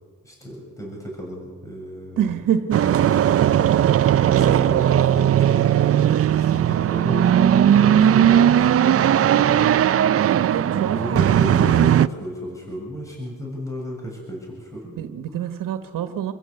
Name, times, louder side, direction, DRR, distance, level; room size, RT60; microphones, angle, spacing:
voice 1, 0.2-2.2 2.7-3.4 4.4-5.9 6.4-9.8 10.7-15.0, equal, 10° left, -2 dB, 7.4 m, -33 dB
voice 2, 2.2-3.1 3.5-3.9 4.3-4.6 6.0-6.3 10.2-11.5 15.0-16.3, right 9 dB, 85° right, 8 dB, 1.5 m, -27 dB
sound 1, 2.7-12.1, right 10 dB, 45° right, 0.6 m, -17 dB
28.0 x 15.5 x 8.2 m, 1.5 s
cardioid pair, 120°, 32 cm